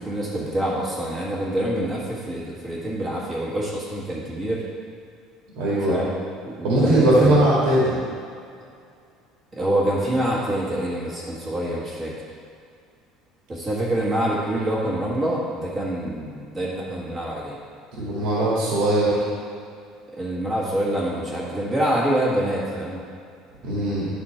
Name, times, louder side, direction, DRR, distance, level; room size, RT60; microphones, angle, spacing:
voice 1, 0.0-4.6 5.9-6.1 6.4-7.4 9.5-12.1 13.5-17.6 20.1-23.0, right 1 dB, 20° right, -6 dB, 1.5 m, -26 dB
voice 2, 5.6-5.9 6.6-7.9 18.0-19.2 23.6-24.1, right 1 dB, 70° right, -6 dB, 2.0 m, -19 dB
11.0 x 4.3 x 4.4 m, 2.4 s
cardioid pair, 180°, 0 cm